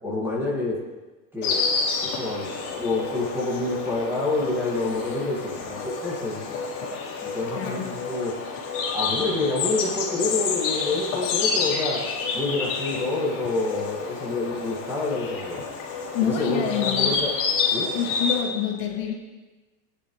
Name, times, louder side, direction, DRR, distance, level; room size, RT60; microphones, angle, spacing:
voice 1, 0.0-0.8 1.3-1.6 2.0-6.6 7.2-8.3 8.9-12.0 12.3-15.6 16.2-17.3 17.7-17.9, left 2 dB, 5° right, -5 dB, 2.1 m, -28 dB
Insect, 1.4-18.4, left 5 dB, 40° left, 3.3 m, -29 dB
voice 2, 7.6-7.9 16.1-17.1 17.9-19.1, left 8 dB, 55° left, 0 dB, 2.4 m, -27 dB
21.5 x 10.0 x 3.3 m, 1.2 s
supercardioid pair, 165°, 49 cm